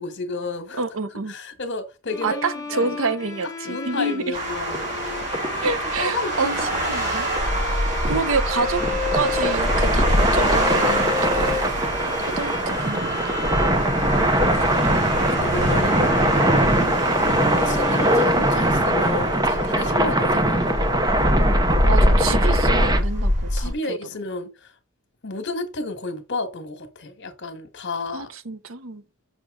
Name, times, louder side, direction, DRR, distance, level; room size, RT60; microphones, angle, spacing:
voice 1, 0.0-0.8 1.3-2.9 3.7-4.9 5.6-6.8 14.8-16.5 17.6-20.8 23.5-24.7 25.2-28.3, left 2 dB, 60° left, 1.4 m, -32 dB
voice 2, 0.7-1.3 2.2-4.4 5.6-6.6 6.9-7.3 8.0-8.8 9.1-11.9 12.2-13.7 15.6-16.1 17.2-17.5 20.5-20.6 21.8-24.0 28.1-29.0, right 4 dB, 70° right, 0.8 m, -28 dB
Bowed string instrument, 2.1-19.1, left 4 dB, 15° left, 1.1 m, -33 dB
sound 1, 4.3-23.7, equal, 35° right, 4.0 m, -25 dB
sound 2, 4.7-23.0, right 1 dB, 20° right, 0.9 m, -22 dB
6.7 x 6.4 x 3.6 m
head